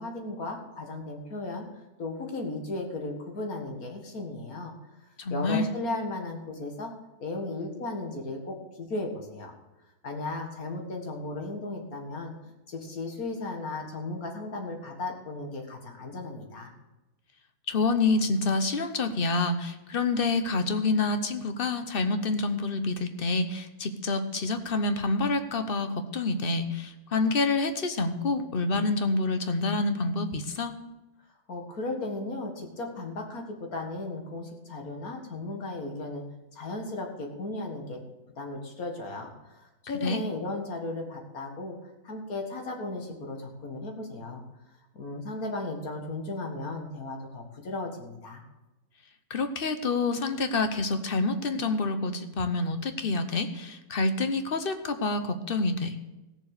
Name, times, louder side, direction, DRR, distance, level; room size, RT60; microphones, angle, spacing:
voice 1, 0.0-4.7 5.3-6.9 7.2-9.5 10.0-12.3 12.7-16.7 31.5-36.2 36.5-38.0 38.4-44.4 44.9-48.4, left 2 dB, 70° left, 3 dB, 2.2 m, -35 dB
voice 2, 5.2-5.7 17.7-30.7 40.0-40.2 49.3-55.9, left 3 dB, 40° left, 9 dB, 1.0 m, -27 dB
16.0 x 7.1 x 6.6 m, 1.0 s
omnidirectional pair, 1.6 m